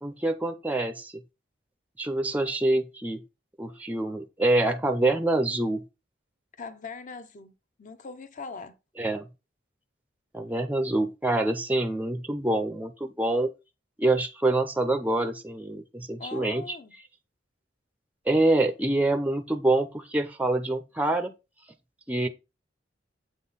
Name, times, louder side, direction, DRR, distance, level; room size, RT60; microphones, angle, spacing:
voice 1, 0.0-1.1 2.0-3.2 3.6-5.8 9.0-9.3 10.3-13.5 14.0-16.8 18.3-21.3 22.1-22.3, right 2 dB, 10° right, 0.4 m, -26 dB
voice 2, 6.6-8.8 16.2-17.0, left 4 dB, 45° left, 0.6 m, -41 dB
7.7 x 3.7 x 4.0 m
head